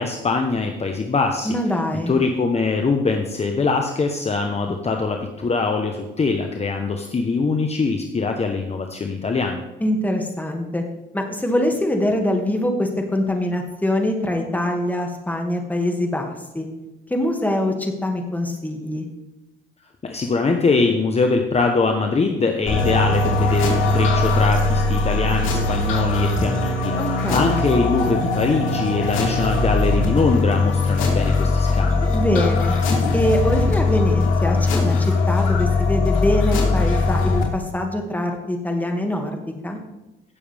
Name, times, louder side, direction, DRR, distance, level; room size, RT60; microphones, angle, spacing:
voice 1, 0.0-1.6 2.1-9.6 20.0-27.0 27.3-32.1, left 4 dB, 30° left, 4 dB, 1.1 m, -22 dB
voice 2, 1.4-2.1 9.8-10.8 11.1-16.7 17.1-19.1 27.0-27.6 32.1-32.7 33.1-39.3 39.6-39.8, left 1 dB, 10° left, 2 dB, 2.3 m, -23 dB
sound 1, 22.7-37.4, left 3 dB, 85° left, 3.1 m, -20 dB
17.0 x 7.2 x 3.5 m, 1.0 s
cardioid pair, 90°, 20 cm